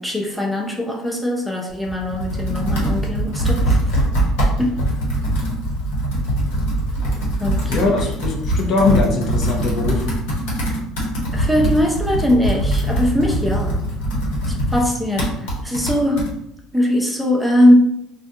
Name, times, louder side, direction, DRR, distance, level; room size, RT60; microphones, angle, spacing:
voice 1, 0.0-4.0 4.6-4.8 7.4-8.0 10.6-10.8 11.3-13.8 14.5-16.2 16.7-17.7, left 1 dB, ahead, -1 dB, 0.7 m, -20 dB
Computer keyboard, 1.7-16.3, right 1 dB, 80° left, 1.1 m, -22 dB
voice 2, 7.7-10.1 14.5-14.6, left 3 dB, 55° left, 1 dB, 0.7 m, -20 dB
2.6 x 2.2 x 3.5 m, 0.79 s
supercardioid pair, 85°, 0 cm